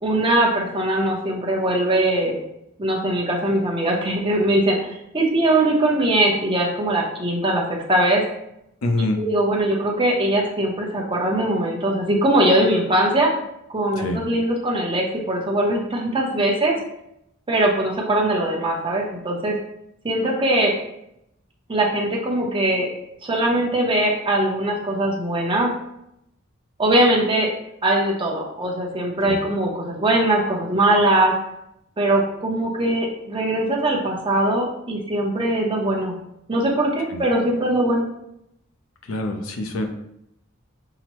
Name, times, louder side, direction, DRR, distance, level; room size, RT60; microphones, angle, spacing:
voice 1, 0.0-2.4 2.8-8.2 9.2-13.3 13.7-16.8 17.5-19.6 20.0-20.7 21.7-22.9 23.2-25.7 26.8-27.5 27.8-31.3 32.0-36.1 36.5-38.1, right 1 dB, 25° right, -2 dB, 0.7 m, -21 dB
voice 2, 8.8-9.2 14.0-14.2 29.3-29.4 37.1-37.2 39.1-39.9, left 1 dB, 80° left, 4 dB, 0.5 m, -25 dB
5.7 x 2.0 x 3.0 m, 0.80 s
head